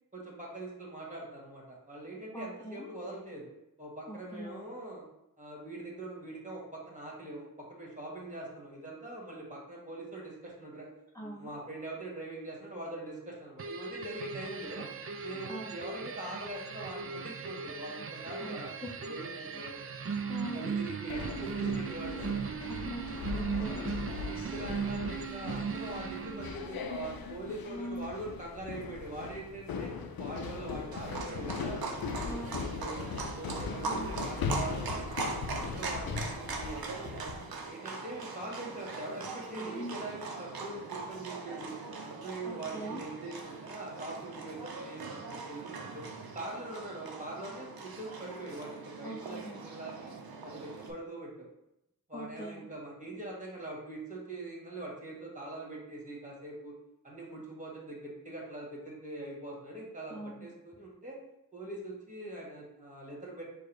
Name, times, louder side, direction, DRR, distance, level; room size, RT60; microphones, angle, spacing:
voice 1, 0.1-3.5 3.8-5.0 5.4-10.9 11.2-14.9 15.2-18.7 19.1-19.8 20.5-22.3 24.3-33.1 33.4-35.3 35.5-41.7 42.0-46.1 46.3-50.1 50.4-51.5 52.1-56.7 57.0-61.2 61.5-63.4, right 2 dB, 20° right, -4 dB, 1.7 m, -43 dB
voice 2, 2.3-2.9 4.1-4.6 11.1-11.5 15.5-15.8 18.4-18.9 19.5-19.6 20.3-20.6 22.4-23.9 27.7-28.1 32.2-32.7 33.8-34.2 39.6-40.0 42.4-43.0 49.0-49.6 52.1-52.7 60.1-60.5, equal, 10° left, -3 dB, 0.6 m, -42 dB
sound 1, 13.6-26.8, right 6 dB, 40° right, 0.4 m, -38 dB
sound 2, 21.1-37.6, left 5 dB, 80° left, 0.5 m, -39 dB
Livestock farm animals working animals, 30.9-50.9, right 3 dB, 85° right, 0.6 m, -41 dB
4.7 x 2.3 x 4.6 m, 0.86 s
cardioid pair, 55°, 35 cm